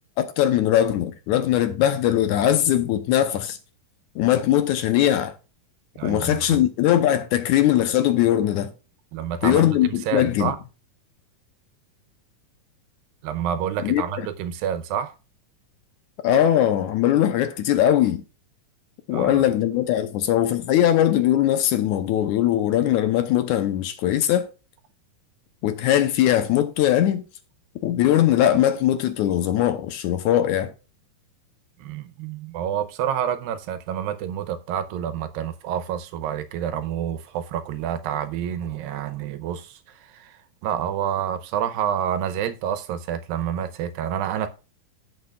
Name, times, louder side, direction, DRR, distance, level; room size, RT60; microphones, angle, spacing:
voice 1, 0.2-3.6 4.2-5.4 6.0-8.7 9.4-10.5 13.8-14.3 16.2-18.2 19.1-24.5 25.6-27.2 27.8-30.7, left 11 dB, 75° left, 1.9 m, -20 dB
voice 2, 6.0-6.6 9.1-10.6 13.2-15.1 19.1-19.4 31.8-44.5, right 9 dB, 85° right, 2.5 m, -28 dB
15.5 x 6.1 x 2.4 m
omnidirectional pair, 4.1 m